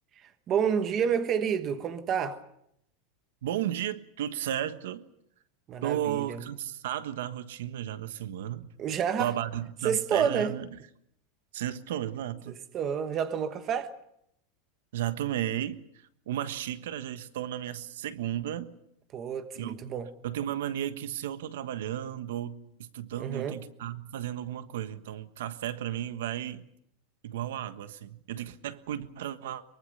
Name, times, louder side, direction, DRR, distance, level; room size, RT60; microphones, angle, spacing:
voice 1, 0.5-2.4 5.7-6.4 8.8-9.3 9.8-10.5 12.5-13.9 19.1-20.1 23.2-23.6, right 7 dB, 25° right, 1.3 m, -29 dB
voice 2, 3.4-5.0 5.8-8.7 9.2-10.7 11.5-12.5 14.9-15.8 16.3-18.7 19.6-19.8 20.2-26.6 27.2-29.6, right 11 dB, 80° right, 1.4 m, -34 dB
23.5 x 23.5 x 6.7 m
supercardioid pair, 175°, 0 cm